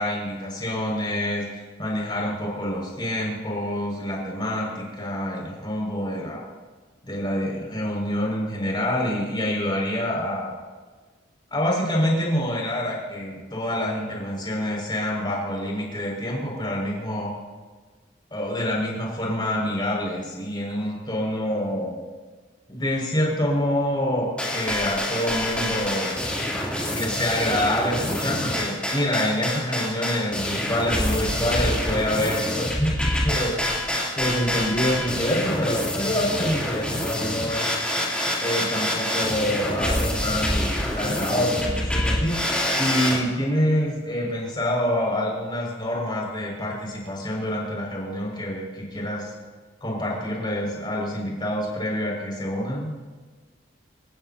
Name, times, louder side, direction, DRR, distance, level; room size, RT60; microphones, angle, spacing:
voice 1, 0.0-6.4 7.0-10.5 11.5-17.3 18.3-22.0 22.7-26.2 26.9-37.9 38.4-49.3 49.8-52.9, left 1 dB, 25° left, -3 dB, 6.3 m, -27 dB
sound 1, 24.4-43.2, left 1 dB, 5° left, 3.3 m, -26 dB
29.0 x 15.5 x 2.9 m, 1.4 s
head